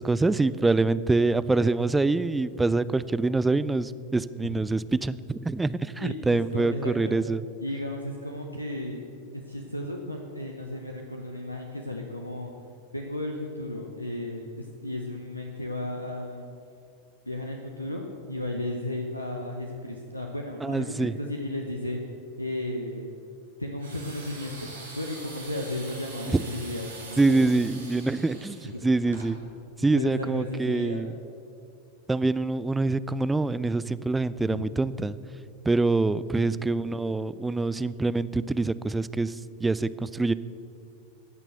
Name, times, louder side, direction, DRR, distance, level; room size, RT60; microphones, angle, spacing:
voice 1, 0.0-7.4 20.6-21.1 26.3-26.4 27.2-29.4 29.8-31.1 32.1-35.2 35.7-40.3, right 3 dB, 10° right, 16 dB, 0.3 m, -25 dB
voice 2, 6.0-7.2 7.6-9.0 9.3-12.5 12.9-16.5 17.2-22.0 22.4-23.1 23.6-24.7 25.0-27.4 28.6-28.8 29.8-31.1 34.5-34.6, left 1 dB, 85° left, 1 dB, 0.9 m, -34 dB
sound 1, 23.8-29.3, right 2 dB, 70° right, 2.8 m, -44 dB
15.5 x 6.0 x 7.7 m, 2.5 s
figure-of-eight pair, 90°, 0 cm